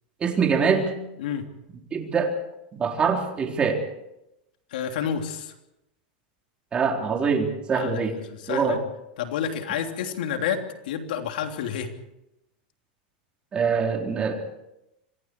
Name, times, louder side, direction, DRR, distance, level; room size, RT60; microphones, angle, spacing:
voice 1, 0.2-0.9 1.9-2.3 2.7-3.8 6.7-8.1 8.5-8.8 13.5-14.4, right 5 dB, 20° right, 2 dB, 4.0 m, -24 dB
voice 2, 4.7-5.5 7.7-8.8 9.2-11.9, left 8 dB, 80° left, 4 dB, 3.2 m, -29 dB
26.5 x 23.5 x 4.7 m, 0.88 s
supercardioid pair, 140°, 5 cm